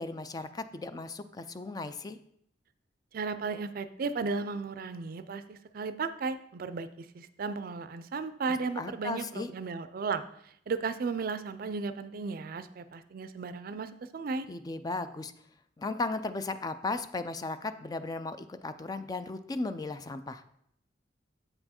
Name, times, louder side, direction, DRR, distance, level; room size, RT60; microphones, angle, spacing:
voice 1, 0.0-2.2 8.8-9.5 14.5-15.3 15.8-20.4, left 3 dB, 20° left, 11 dB, 0.3 m, -36 dB
voice 2, 3.1-10.2 10.7-14.5, right 4 dB, 55° right, 12 dB, 0.4 m, -35 dB
7.7 x 4.5 x 4.3 m, 0.71 s
head